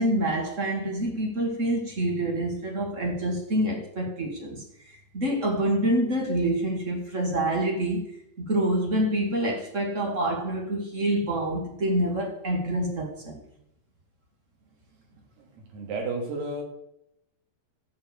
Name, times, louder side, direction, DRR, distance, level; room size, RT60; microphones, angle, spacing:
voice 1, 0.0-8.1 8.5-13.4, right 1 dB, 40° right, 1.0 m, -27 dB
voice 2, 15.1-16.6, right 3 dB, 80° right, 4.6 m, -33 dB
14.0 x 4.8 x 8.3 m
omnidirectional pair, 4.6 m